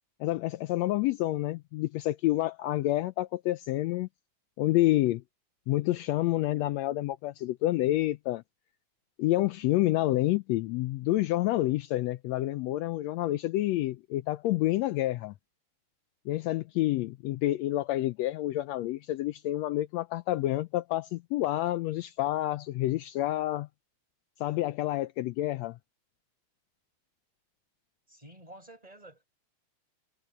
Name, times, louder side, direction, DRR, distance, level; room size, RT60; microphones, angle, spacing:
voice 1, 0.2-4.1 4.6-5.2 5.7-8.4 9.2-15.3 16.3-23.7 24.4-25.8, left 16 dB, 80° left, 1.7 m, -28 dB
voice 2, 28.1-29.3, right 1 dB, 10° right, 6.4 m, -50 dB
omnidirectional pair, 3.3 m